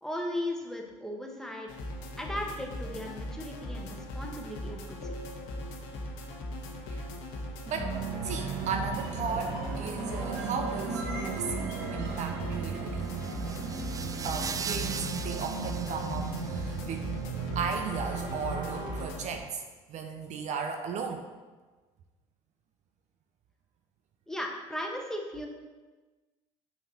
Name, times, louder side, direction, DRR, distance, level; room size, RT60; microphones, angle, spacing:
voice 1, 0.0-1.7 2.2-5.1 24.3-25.5, left 1 dB, 5° left, 1 dB, 1.4 m, -36 dB
sound 1, 1.7-19.4, left 1 dB, 70° left, 1.1 m, -39 dB
voice 2, 7.7-8.0 8.2-13.1 14.2-17.1 17.5-19.6 19.9-21.3, right 5 dB, 50° right, 5 dB, 0.7 m, -36 dB
sound 2, 7.7-19.1, right 5 dB, 70° right, 1.2 m, -36 dB
sound 3, 13.0-16.9, right 6 dB, 25° right, 0.4 m, -39 dB
7.1 x 5.6 x 4.3 m, 1.3 s
hypercardioid pair, 65°, 15 cm